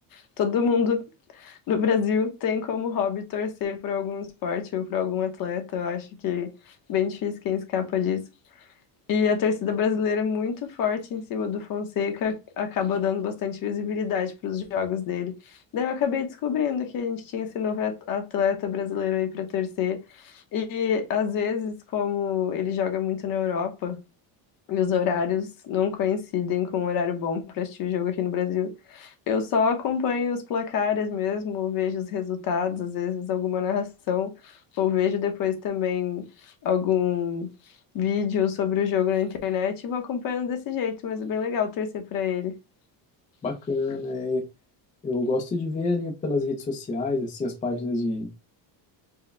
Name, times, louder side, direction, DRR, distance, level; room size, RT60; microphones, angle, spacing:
voice 1, 0.1-1.0 1.3-6.5 6.9-8.2 9.1-15.3 15.7-24.0 24.7-36.3 36.6-37.5 37.9-42.5, left 7 dB, 50° left, 0.9 m, -27 dB
voice 2, 43.4-44.4 45.0-48.3, left 2 dB, 20° left, 0.5 m, -27 dB
4.6 x 2.2 x 3.1 m
cardioid pair, 175°, 44 cm